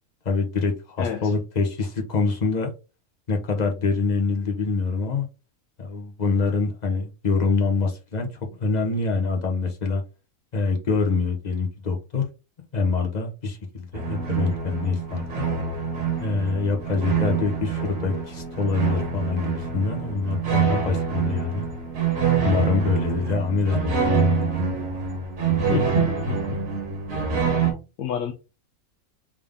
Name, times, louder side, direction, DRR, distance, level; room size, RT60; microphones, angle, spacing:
voice 1, 0.2-2.7 3.3-5.3 5.8-8.3 8.6-10.0 10.5-12.2 12.7-15.3 16.2-21.6 22.4-24.5, left 4 dB, 35° left, 0.8 m, -25 dB
voice 2, 1.0-1.3 25.7-26.4 28.0-28.3, left 9 dB, 85° left, 1.1 m, -29 dB
sound 1, 13.9-27.7, right 6 dB, 60° right, 1.6 m, -26 dB
3.6 x 3.5 x 3.5 m
omnidirectional pair, 1.6 m